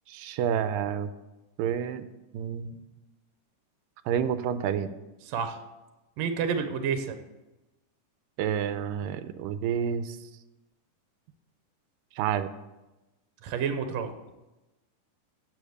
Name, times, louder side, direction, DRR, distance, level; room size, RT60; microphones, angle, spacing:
voice 1, 0.1-1.1 1.6-2.1 2.3-2.7 4.1-4.9 8.4-10.2 12.2-12.5, right 8 dB, 85° right, 12 dB, 2.3 m, -29 dB
voice 2, 5.3-5.6 6.2-7.2 13.4-14.1, right 6 dB, 70° right, 8 dB, 1.7 m, -29 dB
8.6 x 6.9 x 7.8 m, 1.0 s
omnidirectional pair, 3.9 m